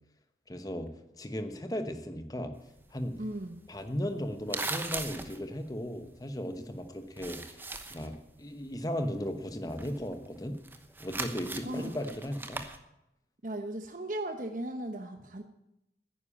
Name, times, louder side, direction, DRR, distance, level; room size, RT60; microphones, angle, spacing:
voice 1, 0.5-0.9 1.2-2.5 2.9-3.2 3.7-7.6 7.9-10.6 11.0-12.6, equal, 20° left, 7 dB, 1.0 m, -36 dB
sound 1, 2.6-6.8 7.0-8.2 8.4-12.8, right 3 dB, 10° right, 0.9 m, -40 dB
voice 2, 3.2-3.6 11.6-11.9 13.4-15.4, right 1 dB, 45° right, 6 dB, 1.0 m, -37 dB
10.5 x 9.8 x 8.8 m, 0.85 s
head